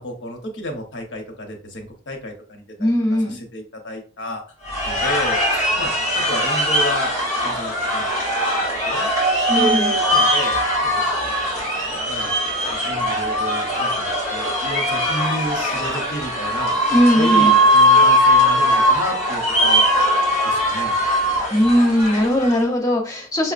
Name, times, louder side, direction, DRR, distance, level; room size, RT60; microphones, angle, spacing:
voice 1, 0.0-2.6 3.2-4.4 4.8-5.4 5.7-7.1 7.4-8.1 8.8-9.1 9.5-11.1 12.1-12.4 12.7-19.9 20.4-21.0, equal, 80° left, 4 dB, 0.9 m, -31 dB
voice 2, 2.8-3.4 9.5-9.9 16.9-17.5 21.5-23.5, equal, 20° left, -1 dB, 0.7 m, -18 dB
sound 1, 4.6-22.7, equal, 10° right, 1.5 m, -20 dB
5.5 x 2.1 x 2.4 m, 0.39 s
head